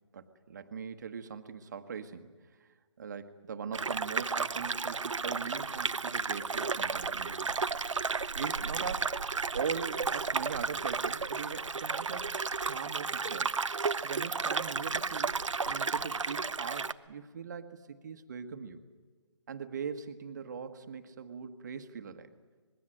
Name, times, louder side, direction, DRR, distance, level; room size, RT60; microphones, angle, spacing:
voice 1, 0.1-2.3 2.6-2.7 3.0-7.6 8.3-9.1 9.5-12.4 12.6-13.5 14.0-15.4 15.7-18.8 19.5-22.3, right 6 dB, 35° right, 8 dB, 1.4 m, -41 dB
sound 1, 3.7-16.9, right 4 dB, 85° right, 0.8 m, -33 dB
25.5 x 21.0 x 7.8 m, 1.4 s
figure-of-eight pair, 160°, 16 cm